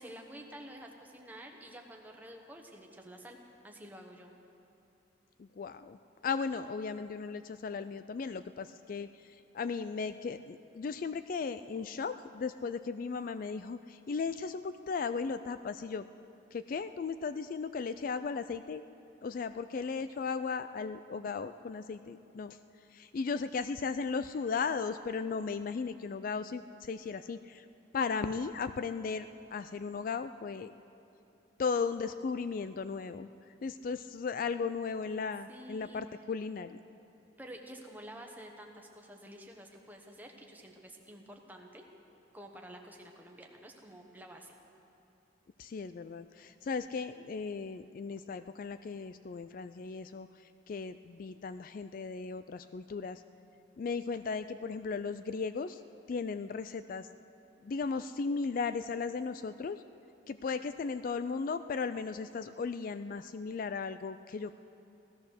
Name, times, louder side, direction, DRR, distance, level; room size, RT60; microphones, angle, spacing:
voice 1, 0.0-3.4 3.6-4.3 35.5-36.0 37.4-41.9 42.3-44.6, right 1 dB, 10° right, 2 dB, 1.2 m, -49 dB
voice 2, 5.4-6.0 6.2-16.1 16.5-18.8 19.2-22.6 22.9-27.7 27.9-30.7 31.6-36.8 45.6-53.2 53.8-55.8 56.1-57.1 57.6-59.8 60.3-64.5, left 5 dB, 45° left, 12 dB, 0.3 m, -36 dB
16.0 x 13.5 x 6.5 m, 2.7 s
head